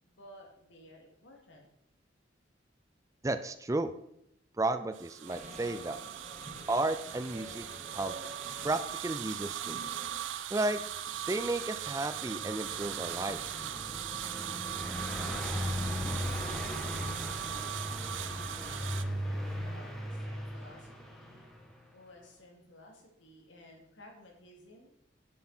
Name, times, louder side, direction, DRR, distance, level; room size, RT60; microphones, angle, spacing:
voice 1, 0.0-1.7 15.3-16.7 17.3-21.5 21.9-24.9, left 1 dB, 80° left, 0 dB, 2.7 m, -56 dB
voice 2, 3.2-3.9 4.6-6.0 6.7-7.7 7.9-8.1 8.6-9.8 10.5-10.8 11.3-13.4, right 2 dB, 15° right, 11 dB, 0.4 m, -33 dB
sound 1, 4.9-19.0, right 10 dB, 85° right, 0.5 m, -39 dB
sound 2, 5.2-10.3, right 2 dB, 40° right, 1.5 m, -48 dB
Car passing by, 10.9-21.7, equal, ahead, 1.4 m, -38 dB
10.0 x 7.6 x 4.4 m, 0.78 s
head